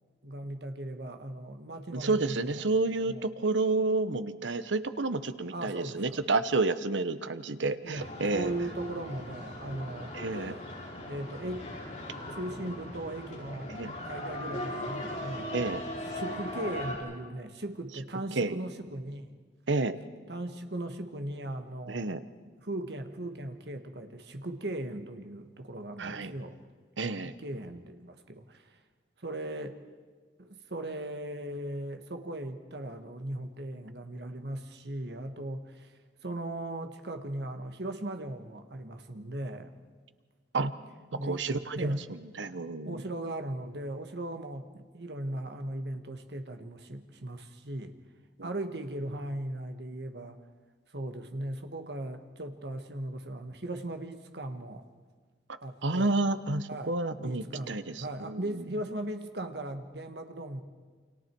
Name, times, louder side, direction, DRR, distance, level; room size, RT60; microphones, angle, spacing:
voice 1, 0.2-2.6 3.1-3.2 5.5-6.2 7.8-10.2 11.1-11.7 12.2-13.7 14.0-15.8 16.1-19.3 20.3-22.1 22.6-26.6 27.2-28.8 29.2-29.8 30.4-35.9 36.2-39.7 41.1-41.4 41.8-42.0 42.8-48.0 48.4-50.4 50.9-54.9 55.6-56.2 56.7-60.6, right 1 dB, 65° right, 7 dB, 1.5 m, -38 dB
voice 2, 1.9-8.5 10.1-10.6 13.7-13.9 15.5-15.8 18.4-18.6 19.7-20.0 21.9-22.2 26.0-26.3 27.0-27.3 40.5-40.7 41.2-43.0 48.4-48.5 55.8-58.6, right 3 dB, 90° right, 12 dB, 1.0 m, -30 dB
sound 1, 7.9-17.0, left 1 dB, 40° left, 5.5 m, -39 dB
29.0 x 25.5 x 4.6 m, 1.5 s
head